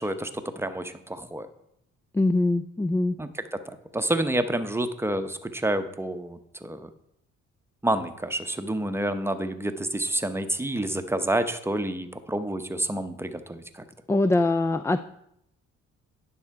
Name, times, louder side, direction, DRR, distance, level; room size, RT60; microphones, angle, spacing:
voice 1, 0.0-1.5 3.2-3.6 3.9-6.9 7.8-13.8, right 1 dB, 10° right, 9 dB, 0.8 m, -29 dB
voice 2, 2.1-3.1 14.1-15.0, left 2 dB, 10° left, 11 dB, 0.3 m, -23 dB
9.8 x 6.4 x 4.7 m, 0.77 s
cardioid pair, 90°, 30 cm